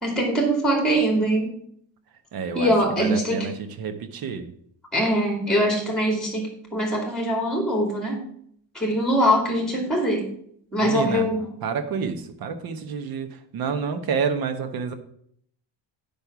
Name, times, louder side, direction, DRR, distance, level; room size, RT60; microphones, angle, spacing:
voice 1, 0.0-1.5 2.5-3.5 4.9-8.2 8.7-10.2 10.7-11.4, equal, ahead, 1 dB, 2.4 m, -22 dB
voice 2, 2.3-4.5 10.8-11.3 11.6-14.9, right 6 dB, 50° right, 8 dB, 1.1 m, -29 dB
9.8 x 5.3 x 6.0 m, 0.66 s
cardioid pair, 160°, 45 cm